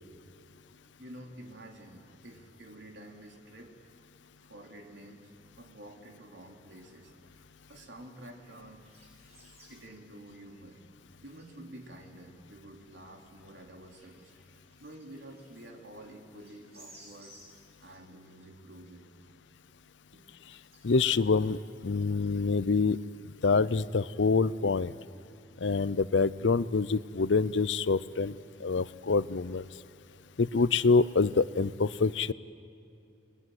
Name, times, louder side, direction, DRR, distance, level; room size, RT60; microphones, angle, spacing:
voice 1, 1.0-3.7 4.4-5.3 5.6-7.1 7.7-8.9 9.7-10.8 11.2-17.3 17.8-19.1 20.1-20.3 25.0-25.2, right 1 dB, 75° right, 1 dB, 3.1 m, -49 dB
sound 1, 6.8-6.9 7.2-7.6 7.8-9.7 10.1-10.9 11.2-11.5 12.1-12.2 12.7-12.8 13.3-16.0 16.3-18.1 18.6-18.7 19.5-19.6 20.4-21.2, right 1 dB, 35° right, 7.6 m, -59 dB
voice 2, 20.8-24.9 25.6-29.7 30.4-32.3, left 4 dB, 85° left, 18 dB, 0.6 m, -26 dB
30.0 x 21.0 x 7.9 m, 2.7 s
head